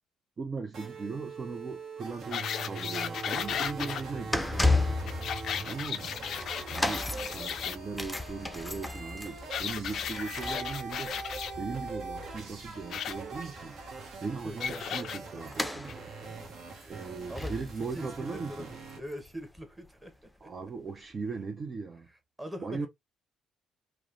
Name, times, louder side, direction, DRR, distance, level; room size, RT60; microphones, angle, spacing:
voice 1, 0.4-5.0 5.6-6.1 6.7-13.8 14.2-15.9 16.8-18.7 20.4-22.1 22.6-22.9, right 4 dB, 45° right, 0.5 m, -38 dB
sound 1, 0.7-19.0, right 4 dB, 65° right, 0.9 m, -43 dB
sound 2, 2.3-4.0 5.1-7.8 9.5-11.5 12.9-13.1 14.6-15.2 15.9-16.0, left 8 dB, 65° left, 0.3 m, -35 dB
sound 3, 3.3-19.6 19.8-20.1 20.9-21.0, left 2 dB, 10° left, 0.5 m, -35 dB
voice 2, 5.8-6.3 14.4-15.0 15.3-15.4 16.0-20.5 22.4-22.9, equal, 15° right, 1.0 m, -44 dB
3.0 x 2.0 x 2.5 m
hypercardioid pair, 55°, 0 cm